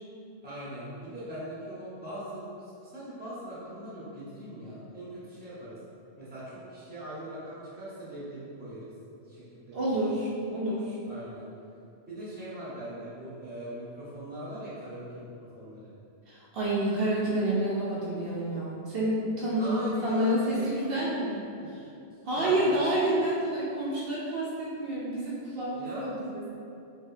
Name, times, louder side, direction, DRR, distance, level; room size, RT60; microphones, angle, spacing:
voice 1, 0.4-5.8 6.2-8.9 9.3-10.0 11.0-11.5 12.1-15.3 15.5-15.9 19.6-20.8 21.6-21.7 22.3-22.8 25.7-26.1, right 1 dB, 10° right, -10 dB, 0.8 m, -41 dB
voice 2, 9.7-11.0 16.3-21.5 22.2-26.6, right 1 dB, 70° right, -6 dB, 0.8 m, -29 dB
3.4 x 2.7 x 2.6 m, 2.6 s
omnidirectional pair, 1.1 m